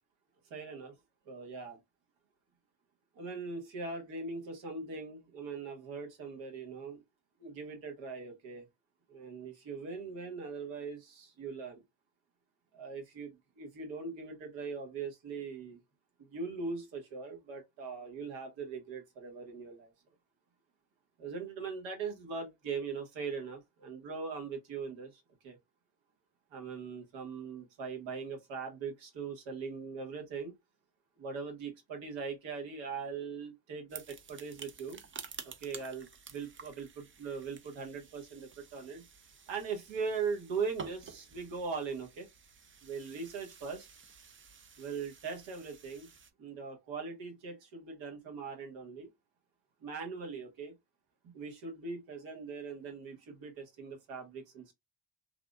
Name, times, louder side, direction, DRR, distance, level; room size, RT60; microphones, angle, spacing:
voice 1, 0.5-0.9 1.3-1.8 3.2-7.0 7.4-8.6 9.1-11.8 12.7-15.8 16.2-19.9 21.2-25.6 26.5-30.6 31.2-35.0 35.4-39.1 39.5-42.3 42.8-43.9 44.8-46.1 46.4-49.1 49.8-50.7 51.2-54.7, right 5 dB, 80° right, 1.3 m, -40 dB
sound 1, 33.9-46.3, right 6 dB, 30° right, 0.5 m, -51 dB
3.3 x 2.5 x 2.3 m
supercardioid pair, 65°, 45 cm